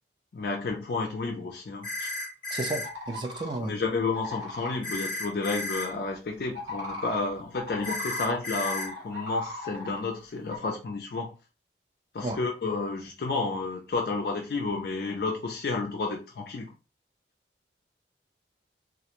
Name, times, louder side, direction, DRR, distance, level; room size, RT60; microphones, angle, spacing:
voice 1, 0.3-2.1 3.6-11.3 12.1-16.7, left 3 dB, 55° left, 0.3 m, -31 dB
sound 1, 1.8-2.9 4.8-5.9 7.8-8.9, left 2 dB, 25° left, 0.8 m, -33 dB
voice 2, 2.5-3.8 12.2-12.4, right 2 dB, 25° right, 0.3 m, -33 dB
sound 2, 2.8-3.6 4.1-4.8 6.5-8.4 8.6-10.0 10.5-10.6, left 2 dB, 90° right, 1.0 m, -38 dB
2.4 x 2.1 x 2.8 m
head